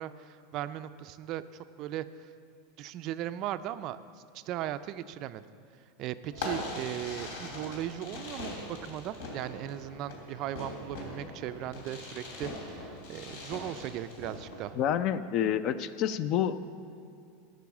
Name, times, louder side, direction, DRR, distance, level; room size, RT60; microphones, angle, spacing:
voice 1, 0.0-2.1 2.8-4.0 4.3-5.5 6.0-14.8, right 12 dB, 40° right, 13 dB, 0.4 m, -38 dB
Fireworks, 6.3-14.7, left 2 dB, 80° left, 2.9 m, -41 dB
voice 2, 14.8-16.6, left 9 dB, 40° left, 14 dB, 0.4 m, -28 dB
13.0 x 6.1 x 7.1 m, 2.4 s
supercardioid pair, 155°, 0 cm